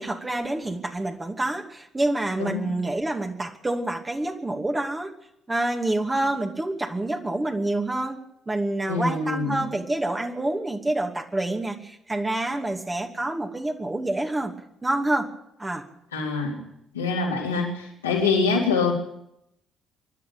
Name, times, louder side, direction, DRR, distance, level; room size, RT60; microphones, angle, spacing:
voice 1, 0.0-5.1 5.5-8.2 8.5-14.5 14.8-15.3 15.6-15.8, right 2 dB, 20° right, 2 dB, 2.7 m, -27 dB
voice 2, 8.9-9.6 16.1-16.6 16.9-18.9, left 4 dB, 85° left, -2 dB, 4.0 m, -24 dB
25.5 x 11.5 x 8.8 m, 0.78 s
figure-of-eight pair, 45°, 0 cm